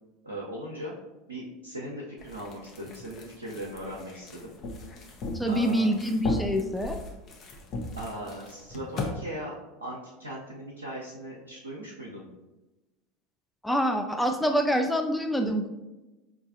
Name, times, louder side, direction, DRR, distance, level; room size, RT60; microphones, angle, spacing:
voice 1, 0.2-0.9 1.3-4.5 5.5-5.9 8.0-9.5 9.8-12.3, right 1 dB, 85° right, -5 dB, 0.5 m, -38 dB
sound 1, 2.2-9.1, left 2 dB, 40° left, 0.7 m, -37 dB
voice 2, 5.3-7.0 13.6-15.7, equal, 5° left, 4 dB, 0.3 m, -26 dB
4.6 x 2.4 x 2.6 m, 1.1 s
figure-of-eight pair, 80°, 0 cm